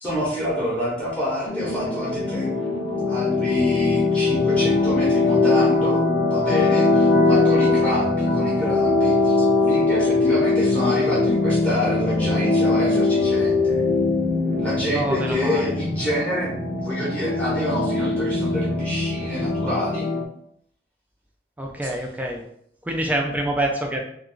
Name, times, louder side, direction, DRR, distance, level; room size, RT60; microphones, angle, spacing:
voice 1, 0.0-2.5 3.0-6.0 6.3-13.8 14.6-20.1 21.8-22.0, left 1 dB, 5° left, -7 dB, 0.8 m, -27 dB
sound 1, 1.5-20.2, left 3 dB, 65° left, 0.5 m, -21 dB
voice 2, 14.9-15.7 21.6-22.4 22.8-24.0, right 1 dB, 10° right, 1 dB, 0.4 m, -26 dB
2.4 x 2.2 x 3.7 m, 0.69 s
head